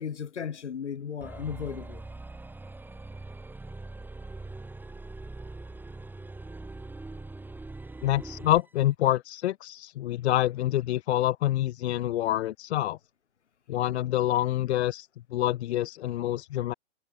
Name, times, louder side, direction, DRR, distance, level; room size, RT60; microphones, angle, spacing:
voice 1, 0.0-2.0, left 7 dB, 90° left, 2.4 m, -35 dB
sound 1, 1.2-8.7, right 2 dB, 5° right, 2.3 m, -42 dB
voice 2, 8.0-13.0 13.7-16.7, left 14 dB, 70° left, 0.6 m, -27 dB
hypercardioid pair, 125°, 34 cm